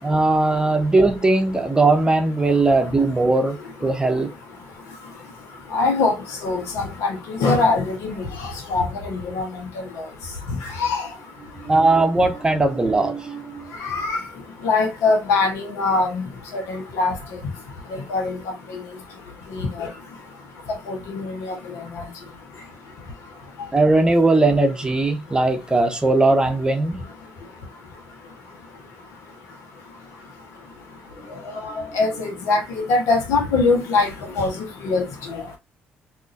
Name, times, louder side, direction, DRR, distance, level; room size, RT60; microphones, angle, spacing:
voice 1, 0.0-4.3 11.5-13.7 23.7-27.0, right 2 dB, 15° right, 0.9 m, -19 dB
voice 2, 5.7-6.1 6.4-8.1 8.7-9.4 10.8-11.1 13.8-14.2 14.6-16.2 16.7-17.1 18.1-18.4 19.8-19.9 20.9-21.3 22.0-22.1 31.6-34.1 34.4-34.5 34.8-35.4, left 3 dB, 75° left, 1.2 m, -22 dB
3.8 x 2.8 x 2.6 m
supercardioid pair, 65°, 5 cm